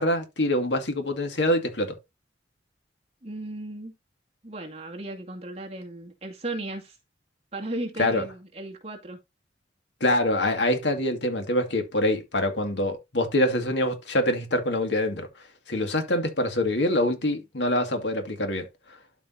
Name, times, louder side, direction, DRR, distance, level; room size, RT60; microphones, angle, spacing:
voice 1, 0.0-2.0 8.0-8.2 10.0-15.3 15.7-18.7, left 1 dB, 80° left, 2.2 m, -25 dB
voice 2, 3.2-3.9 4.4-7.0 7.5-9.2, right 2 dB, 35° right, 2.2 m, -36 dB
12.0 x 5.1 x 2.7 m
head